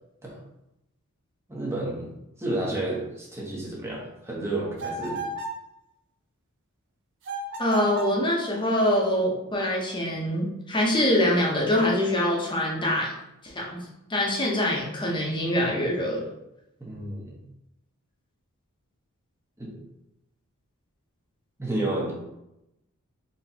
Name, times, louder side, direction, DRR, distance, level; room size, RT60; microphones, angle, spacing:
voice 1, 1.5-2.1 2.4-5.2 16.8-17.4 19.6-19.8 21.6-22.1, right 2 dB, 10° right, -4 dB, 0.9 m, -31 dB
sound 1, 4.8-5.6 7.2-8.2, right 2 dB, 55° right, 0.6 m, -33 dB
voice 2, 7.6-13.1 13.4-13.8 14.1-16.3, left 1 dB, 20° left, -3 dB, 0.9 m, -24 dB
4.1 x 3.1 x 2.8 m, 0.88 s
head